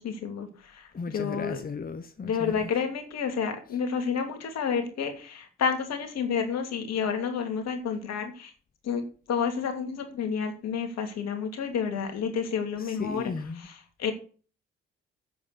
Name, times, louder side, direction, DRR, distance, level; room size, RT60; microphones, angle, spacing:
voice 1, 0.0-1.6 2.2-8.5 8.8-9.0 9.3-13.3 14.0-14.1, left 6 dB, 60° left, 2.7 m, -30 dB
voice 2, 0.9-2.7 12.8-13.7, left 4 dB, 30° left, 1.2 m, -36 dB
8.4 x 7.9 x 8.2 m
hypercardioid pair, 40°, 29 cm